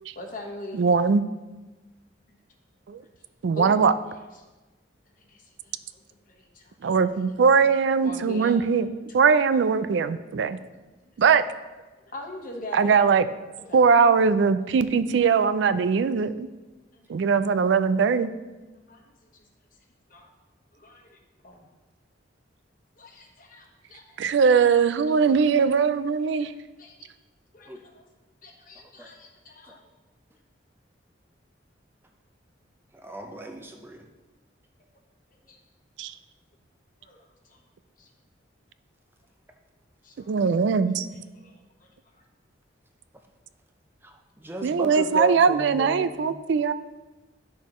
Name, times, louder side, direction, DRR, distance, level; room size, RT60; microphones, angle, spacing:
voice 1, 0.1-0.8 3.5-3.8 5.2-6.0 6.3-6.9 8.0-8.6 10.5-10.8 11.1-11.2 12.0-13.0 13.7-13.8 16.9-17.2 18.6-19.0 19.3-19.4 20.1-20.3 20.7-21.7 23.0-24.2 24.7-25.2 26.4-26.5 26.8-27.1 27.5-28.1 28.4-29.8 35.5-35.6 37.0-37.6 38.0-38.1 40.0-40.3 41.3-42.2, left 1 dB, 45° left, 1 dB, 1.2 m, -43 dB
voice 2, 0.7-1.2 2.9-3.0 3.4-3.9 6.8-8.9 9.1-10.6 11.2-11.4 12.7-13.3 13.7-16.5 17.1-18.3 24.2-26.5 36.0-36.1 40.3-41.1 44.6-46.7, right 5 dB, 70° right, 12 dB, 0.4 m, -21 dB
voice 3, 32.9-34.1 41.0-41.2 44.0-46.4, right 1 dB, 10° right, 3 dB, 0.6 m, -36 dB
10.5 x 6.4 x 3.1 m, 1.2 s
head